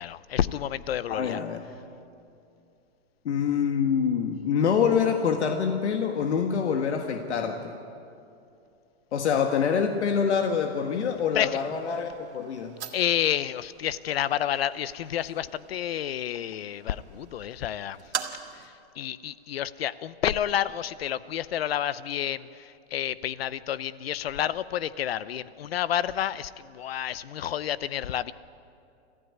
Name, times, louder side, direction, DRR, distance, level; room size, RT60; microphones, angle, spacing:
voice 1, 0.0-1.4 11.3-11.5 12.9-18.0 18.6-28.3, left 10 dB, 65° left, 17 dB, 0.8 m, -30 dB
voice 2, 1.1-1.6 3.3-7.8 9.1-12.7, left 7 dB, 80° left, 4 dB, 1.7 m, -26 dB
sound 1, 10.4-18.7, right 8 dB, 85° right, 1.9 m, -43 dB
26.5 x 14.5 x 9.5 m, 2.6 s
hypercardioid pair, 175°, 33 cm